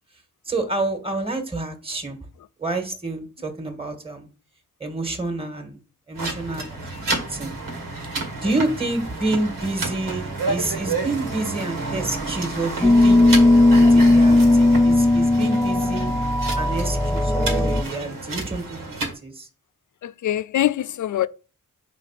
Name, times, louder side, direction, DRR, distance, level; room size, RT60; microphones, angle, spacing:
voice 1, 0.4-2.2 2.6-4.3 4.8-5.8 6.1-7.5 8.4-13.2 13.9-16.1 16.5-19.5, right 2 dB, 15° right, 1.5 m, -28 dB
sound 1, 6.2-19.1, right 3 dB, 90° right, 1.7 m, -30 dB
sound 2, 12.8-17.8, left 2 dB, 5° left, 0.6 m, -16 dB
voice 2, 20.0-21.3, left 12 dB, 65° left, 0.5 m, -23 dB
5.2 x 4.3 x 5.7 m
cardioid pair, 70°, 32 cm